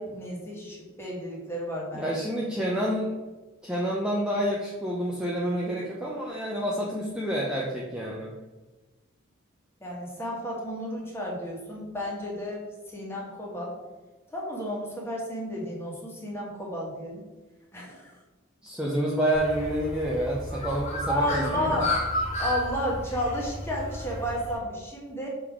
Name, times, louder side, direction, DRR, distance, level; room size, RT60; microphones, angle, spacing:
voice 1, 0.0-2.1 9.8-13.8 14.3-17.2 17.7-18.1 21.1-21.9 22.4-25.3, equal, 10° left, -4 dB, 1.6 m, -32 dB
voice 2, 1.9-3.2 3.6-8.3 18.6-21.8, equal, 5° right, -5 dB, 0.7 m, -28 dB
Bird, 19.3-24.6, left 1 dB, 35° left, 1.7 m, -32 dB
6.6 x 3.8 x 4.8 m, 1.2 s
head